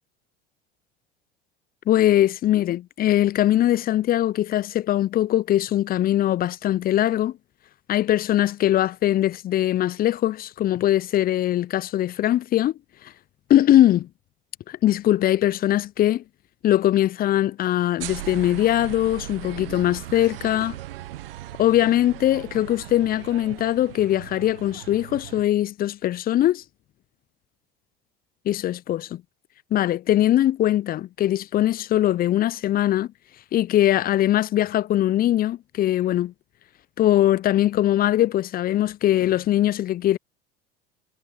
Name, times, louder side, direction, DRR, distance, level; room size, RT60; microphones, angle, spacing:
voice 1, 1.9-7.3 7.9-12.7 13.5-14.1 14.7-16.2 16.6-20.8 21.6-26.6 28.5-29.2 29.7-33.1 33.5-36.3 37.0-40.2, left 13 dB, 30° left, 0.6 m, -21 dB
sound 1, 18.0-25.5, right 15 dB, 70° right, 0.9 m, -38 dB
figure-of-eight pair, 70°, 29 cm